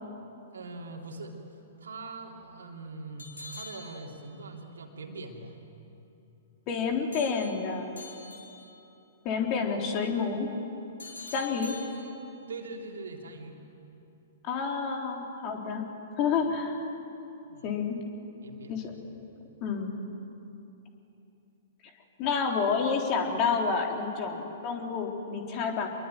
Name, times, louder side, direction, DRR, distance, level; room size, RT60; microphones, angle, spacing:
voice 1, 0.5-1.4 1.8-5.6 12.5-13.6 16.3-16.5 17.5-17.7 18.4-19.2, right 3 dB, 70° right, 1 dB, 3.3 m, -42 dB
sound 1, 3.2-4.5 7.1-8.9 11.0-12.5, left 3 dB, 75° left, 3.8 m, -46 dB
voice 2, 6.7-8.0 9.2-10.5 11.3-11.8 14.4-15.8 16.2-16.8 17.6-18.0 18.7-18.9 19.6-19.9 22.2-25.9, left 5 dB, 35° left, 2 dB, 3.7 m, -29 dB
26.5 x 22.5 x 9.2 m, 2.9 s
figure-of-eight pair, 110°, 0 cm